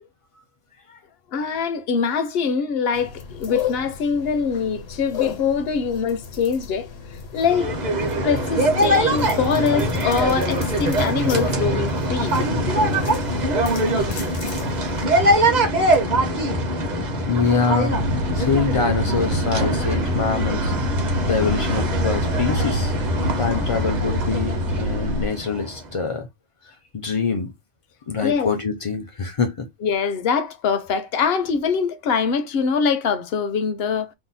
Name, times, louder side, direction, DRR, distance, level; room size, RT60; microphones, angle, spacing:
voice 1, 1.3-6.9 7.3-7.7 8.2-12.4 16.2-16.3 21.4-21.6 28.2-28.5 29.8-34.1, left 6 dB, 65° left, 0.7 m, -23 dB
sound 1, 2.9-15.0, left 8 dB, 85° left, 1.1 m, -35 dB
sound 2, 7.4-25.9, right 1 dB, 45° right, 0.8 m, -23 dB
voice 2, 17.3-18.0 18.3-20.7 21.2-22.9 23.4-26.3 26.9-27.5 28.1-29.7, left 5 dB, 50° left, 0.4 m, -24 dB
sound 3, 17.9-25.3, equal, 70° right, 1.1 m, -26 dB
2.8 x 2.0 x 3.9 m
omnidirectional pair, 1.2 m